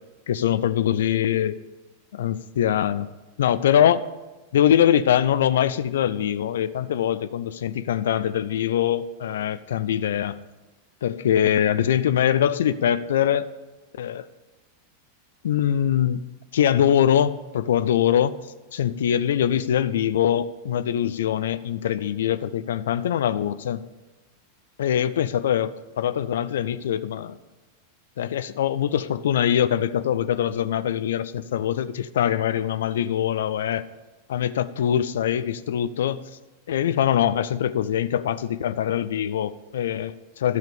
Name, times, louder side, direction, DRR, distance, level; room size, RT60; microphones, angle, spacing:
voice 1, 0.3-1.6 2.1-3.1 3.4-4.0 4.5-10.4 11.0-13.5 14.0-14.3 15.4-16.2 16.5-18.4 18.7-23.8 24.8-27.4 28.2-33.8 34.3-36.2 36.7-40.6, left 10 dB, 60° left, 15 dB, 0.4 m, -23 dB
11.5 x 7.5 x 6.8 m, 1.2 s
figure-of-eight pair, 90°, 0 cm